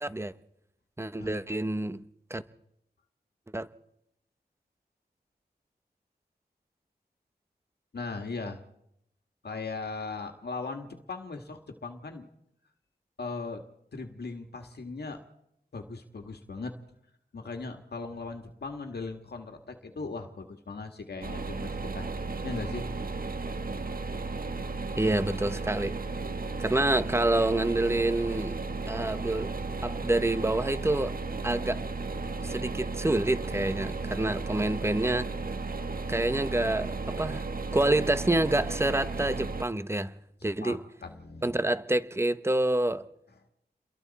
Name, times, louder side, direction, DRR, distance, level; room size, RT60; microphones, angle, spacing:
voice 1, 0.0-0.3 1.0-2.0 2.3-2.4 3.5-3.7 25.0-25.9 26.6-28.6 28.9-31.2 31.4-31.9 32.4-35.3 36.1-37.5 37.7-40.1 40.4-40.8 41.4-43.1, right 1 dB, 15° right, 1.0 m, -27 dB
voice 2, 7.9-8.6 9.4-12.3 13.2-13.6 13.9-15.2 15.7-16.8 17.3-22.1 22.4-22.9 40.4-41.6, left 3 dB, 75° left, 1.8 m, -38 dB
sound 1, 21.2-39.6, right 3 dB, 60° right, 1.4 m, -34 dB
29.5 x 22.0 x 4.2 m
wide cardioid pair, 65°, 17 cm